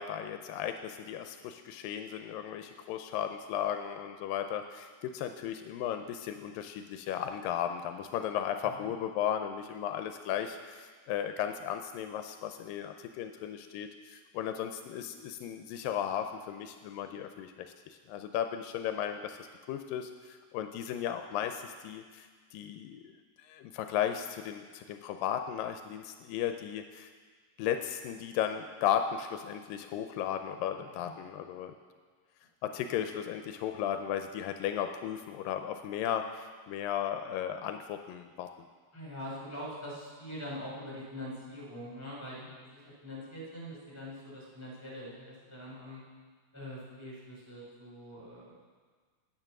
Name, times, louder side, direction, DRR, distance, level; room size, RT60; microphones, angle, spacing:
voice 1, 0.0-19.4 19.7-23.1 23.4-27.1 27.6-31.7 32.6-38.5, left 9 dB, 85° left, 7 dB, 2.2 m, -35 dB
voice 2, 30.8-31.1 38.9-46.0 46.5-48.5, equal, 5° left, -6 dB, 3.7 m, -43 dB
9.3 x 9.1 x 6.0 m, 1.5 s
omnidirectional pair, 4.0 m